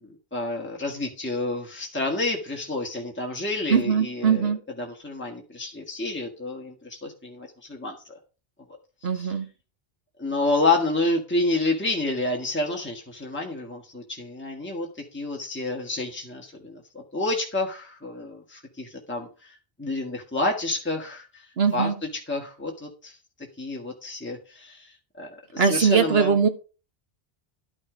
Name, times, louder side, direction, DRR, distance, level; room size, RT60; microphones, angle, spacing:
voice 1, 0.0-8.2 9.1-9.4 10.2-21.9 22.3-23.2 23.6-26.4, left 2 dB, 10° left, -1 dB, 1.7 m, -29 dB
voice 2, 3.7-4.6 9.0-9.5 21.6-22.0 25.6-26.5, right 6 dB, 70° right, 8 dB, 1.5 m, -21 dB
12.0 x 5.9 x 5.0 m, 0.34 s
omnidirectional pair, 1.1 m